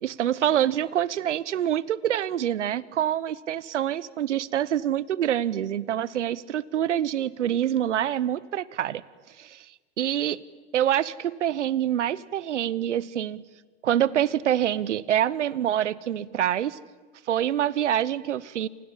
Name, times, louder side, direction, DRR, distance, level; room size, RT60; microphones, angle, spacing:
voice 1, 0.0-9.0 9.4-9.6 10.0-10.4 10.7-13.4 13.8-16.8 17.3-18.7, right 11 dB, 80° right, 20 dB, 1.2 m, -26 dB
29.0 x 27.5 x 7.5 m, 1.4 s
hypercardioid pair, 105°, 35 cm